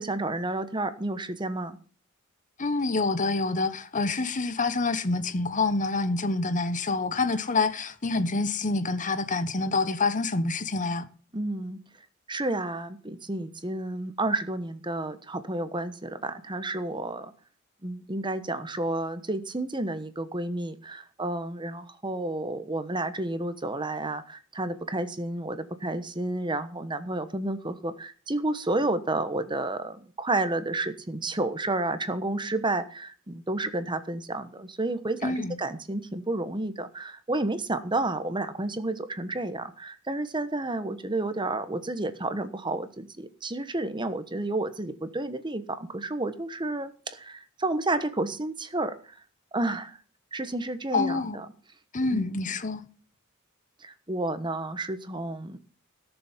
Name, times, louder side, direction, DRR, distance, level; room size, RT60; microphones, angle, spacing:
voice 1, 0.0-1.8 11.3-11.8 12.3-17.3 17.8-49.2 49.5-50.0 50.3-51.5 52.1-52.5 53.8-55.6, right 2 dB, 20° right, 1.1 m, -31 dB
voice 2, 2.6-11.1 35.2-35.5 50.9-51.4 51.9-52.8, left 3 dB, 40° left, 1.2 m, -27 dB
17.0 x 7.2 x 7.3 m
head